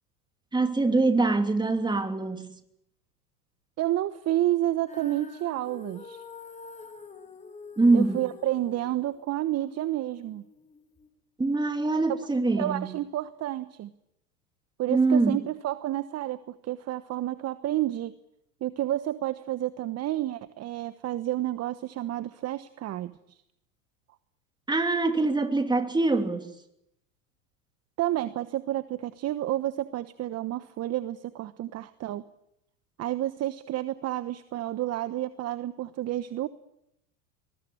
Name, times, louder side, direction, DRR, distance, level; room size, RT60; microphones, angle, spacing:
voice 1, 0.5-2.5 7.8-8.2 11.4-12.9 14.9-15.4 24.7-26.5, right 3 dB, 10° right, 2.9 m, -24 dB
voice 2, 3.8-6.2 7.9-10.4 12.1-12.2 12.6-13.9 14.8-18.1 18.6-23.4 28.0-32.2 33.0-36.5, right 14 dB, 30° right, 1.1 m, -30 dB
Female singing, 4.9-11.1, left 4 dB, 15° left, 3.7 m, -47 dB
24.0 x 21.5 x 8.7 m
hypercardioid pair, 95°, 48 cm